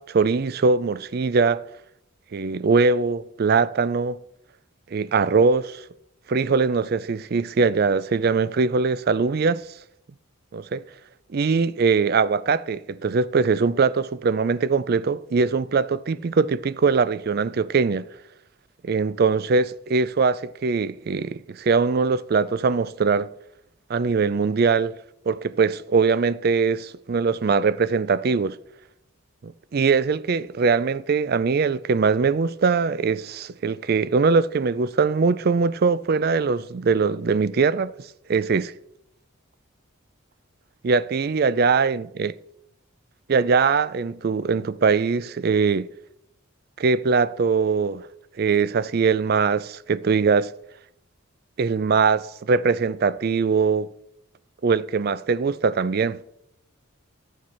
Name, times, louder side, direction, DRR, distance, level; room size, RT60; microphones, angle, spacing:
voice 1, 0.0-1.6 2.3-4.2 4.9-5.8 6.3-9.7 10.5-10.8 11.3-18.1 18.8-23.3 23.9-25.0 25.3-28.6 29.4-37.9 38.3-38.7 40.8-42.3 43.3-45.9 46.8-48.1 48.4-50.5 51.6-53.9 54.6-56.2, right 4 dB, 45° right, 0.4 m, -21 dB
11.5 x 8.6 x 4.4 m
head